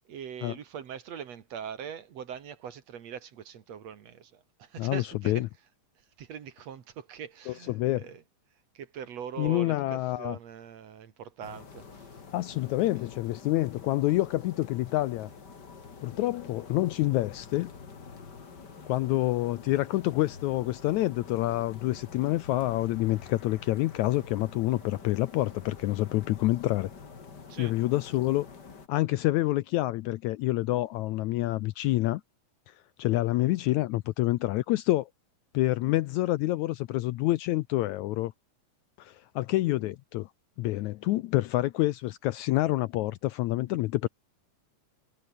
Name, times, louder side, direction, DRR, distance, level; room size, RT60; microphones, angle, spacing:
voice 1, 0.1-5.5 6.2-8.2 8.7-12.1 27.5-27.7, right 8 dB, 55° right, 2.6 m, -42 dB
voice 2, 4.8-5.5 7.5-8.0 9.4-10.4 12.3-15.3 16.0-17.7 18.9-26.9 27.6-28.5 28.9-32.2 32.7-35.1 35.5-38.3 39.0-40.3 40.6-44.1, left 17 dB, 80° left, 1.8 m, -27 dB
sound 1, 11.4-28.9, left 5 dB, 35° left, 2.8 m, -47 dB
omnidirectional pair, 3.8 m